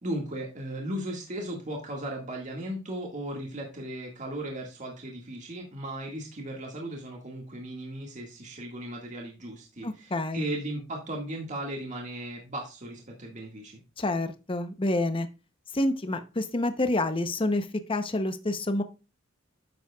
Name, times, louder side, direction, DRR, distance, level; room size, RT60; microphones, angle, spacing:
voice 1, 0.0-13.8, right 1 dB, 40° right, 0 dB, 1.9 m, -36 dB
voice 2, 9.8-10.5 14.0-15.3 15.7-18.8, left 2 dB, 25° left, 9 dB, 0.7 m, -28 dB
10.5 x 7.6 x 2.3 m, 0.29 s
head